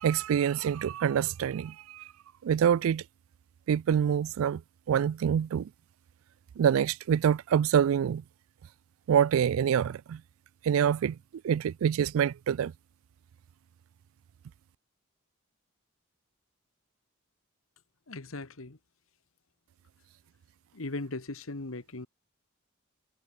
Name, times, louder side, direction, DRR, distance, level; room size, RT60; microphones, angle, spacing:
voice 1, 0.0-2.1 2.4-3.0 3.7-4.6 4.9-5.7 6.6-8.2 9.1-10.2 10.6-11.2 11.4-12.7, right 8 dB, 75° right, 0.3 m, -26 dB
voice 2, 18.1-18.8 20.7-22.1, left 2 dB, 80° left, 1.5 m, -38 dB
head